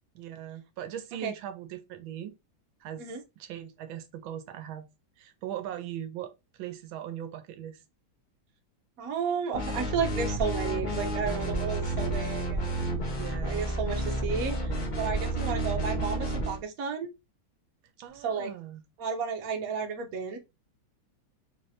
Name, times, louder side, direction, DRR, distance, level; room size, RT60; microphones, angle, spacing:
voice 1, 0.1-2.3 2.8-3.1 3.4-4.9 5.2-7.8 13.1-13.7 18.0-18.8, right 11 dB, 90° right, 1.4 m, -39 dB
voice 2, 9.0-12.9 13.4-17.1 18.2-18.5 19.0-20.4, right 6 dB, 55° right, 1.2 m, -32 dB
sound 1, 9.5-16.6, right 1 dB, 65° left, 0.4 m, -30 dB
4.0 x 3.1 x 2.7 m
omnidirectional pair, 2.1 m